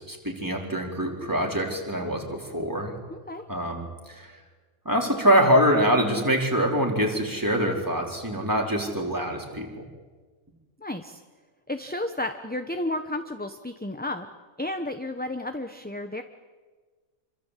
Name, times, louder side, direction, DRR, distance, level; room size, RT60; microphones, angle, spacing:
voice 1, 0.0-3.0 3.5-4.3 4.8-9.7, equal, 15° right, 0 dB, 4.5 m, -24 dB
voice 2, 3.1-3.4 10.8-11.2 11.7-14.3 14.6-16.2, left 1 dB, 5° left, 7 dB, 1.0 m, -32 dB
27.5 x 25.5 x 8.5 m, 1.4 s
omnidirectional pair, 1.5 m